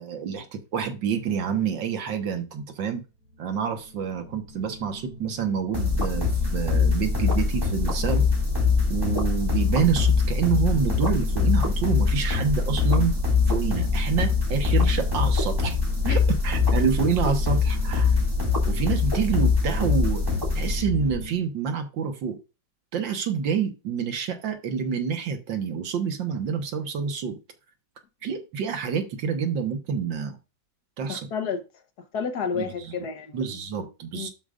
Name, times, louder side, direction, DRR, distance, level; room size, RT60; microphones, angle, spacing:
voice 1, 0.0-3.0 3.4-8.2 8.9-13.2 13.5-15.8 16.1-18.1 18.7-20.2 20.5-22.4 22.9-27.4 28.2-30.4 31.0-31.3 32.5-32.9 33.3-34.3, right 7 dB, 85° right, 2.0 m, -27 dB
sound 1, 3.2-21.4, left 3 dB, 45° right, 2.8 m, -43 dB
sound 2, 5.7-21.2, left 4 dB, 15° right, 2.0 m, -23 dB
voice 2, 31.1-31.6 32.1-33.5 34.1-34.3, left 6 dB, 65° left, 1.5 m, -30 dB
12.0 x 4.9 x 2.5 m
omnidirectional pair, 2.0 m